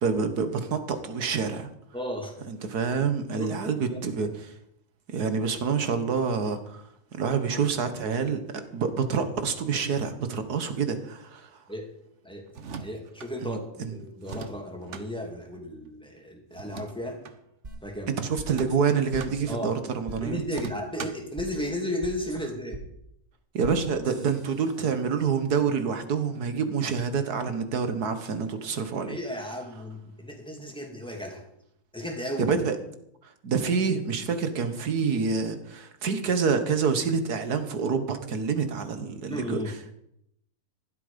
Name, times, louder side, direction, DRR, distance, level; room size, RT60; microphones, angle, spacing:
voice 1, 0.0-1.7 2.5-4.5 5.1-6.8 7.1-8.4 8.7-11.5 13.4-14.0 18.1-20.4 23.5-29.2 32.4-32.8 33.4-39.9, right 5 dB, 75° right, 9 dB, 1.9 m, -27 dB
voice 2, 1.9-2.4 3.4-4.0 11.7-11.9 12.2-12.5 12.8-17.2 17.8-18.2 19.5-19.7 20.2-22.8 29.1-31.4 31.9-32.5 39.3-39.7, equal, 5° left, 2 dB, 2.7 m, -34 dB
sound 1, 12.5-13.3 14.2-15.1 16.5-17.4 18.4-19.4 20.5-21.3, right 5 dB, 50° right, 1.2 m, -39 dB
sound 2, 17.6-17.7 18.4-18.8 19.1-19.2 20.1-20.2 20.5-20.6 21.4-21.5 22.0-22.4 22.7-22.8 23.6-23.8 24.0-25.0, right 3 dB, 35° right, 2.1 m, -41 dB
15.5 x 12.0 x 5.2 m, 0.75 s
omnidirectional pair, 1.7 m